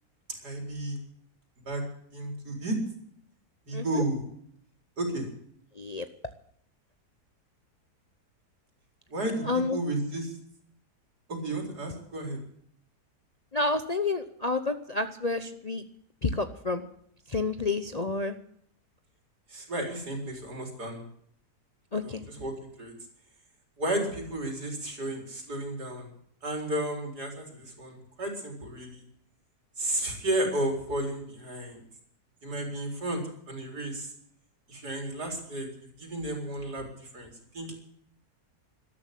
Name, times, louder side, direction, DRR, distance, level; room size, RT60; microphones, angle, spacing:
voice 1, 0.4-1.0 1.6-1.8 2.1-2.8 3.7-4.2 5.0-5.3 9.1-10.3 11.3-12.4 19.5-21.0 22.0-22.9 23.8-26.1 26.4-29.0 29.8-31.8 32.4-33.2 33.5-34.1 34.7-35.7 36.0-37.8, right 1 dB, 75° right, 2 dB, 4.9 m, -33 dB
voice 2, 3.7-4.0 5.8-6.0 9.4-9.8 13.5-15.8 16.2-16.9 17.3-18.4 21.9-22.2, left 3 dB, 35° left, 9 dB, 0.7 m, -29 dB
13.0 x 13.0 x 8.3 m, 0.66 s
omnidirectional pair, 1.7 m